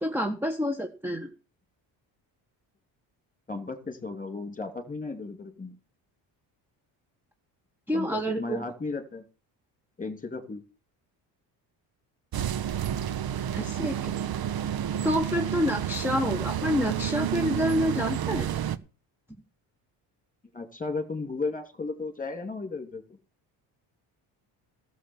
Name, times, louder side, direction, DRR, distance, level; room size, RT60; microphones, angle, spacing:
voice 1, 0.0-1.3 7.9-8.6 13.5-14.1 15.0-18.5, equal, 5° right, 5 dB, 1.4 m, -28 dB
voice 2, 3.5-5.7 7.9-9.2 10.0-10.6 20.5-23.0, left 3 dB, 15° left, 8 dB, 2.9 m, -35 dB
sound 1, 12.3-18.8, right 10 dB, 45° right, 0.9 m, -30 dB
13.5 x 7.2 x 7.1 m, 0.35 s
supercardioid pair, 70°, 49 cm